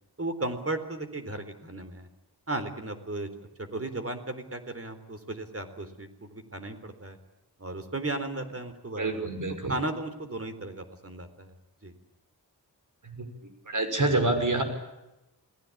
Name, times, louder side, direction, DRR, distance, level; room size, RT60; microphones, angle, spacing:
voice 1, 0.2-2.1 2.5-3.3 3.6-7.2 7.6-9.2 9.7-11.6 11.8-11.9, right 2 dB, 35° right, 9 dB, 3.9 m, -35 dB
voice 2, 9.0-9.7 13.0-13.3 13.7-14.6, right 2 dB, 55° right, 7 dB, 6.0 m, -27 dB
29.0 x 19.0 x 8.7 m, 0.97 s
wide cardioid pair, 100°, 38 cm